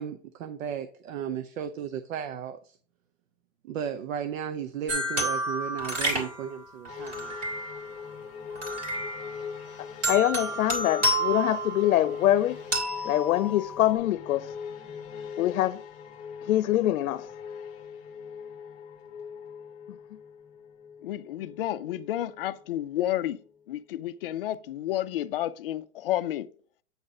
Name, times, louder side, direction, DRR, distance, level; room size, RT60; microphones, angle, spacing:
voice 1, 0.0-2.8 3.6-7.4, right 8 dB, 70° right, 0.8 m, -35 dB
sound 1, 4.9-8.0 8.6-9.6 10.0-12.2 12.7-13.9, right 1 dB, 20° right, 2.5 m, -30 dB
sound 2, 6.9-23.6 23.9-24.0, left 6 dB, 20° left, 1.3 m, -42 dB
voice 2, 9.8-12.6 13.0-14.5 15.4-15.8 16.4-17.3, left 13 dB, 80° left, 0.7 m, -24 dB
voice 3, 21.0-23.4 23.7-26.5, left 13 dB, 45° left, 0.4 m, -31 dB
8.6 x 4.1 x 4.9 m
supercardioid pair, 170°, 41 cm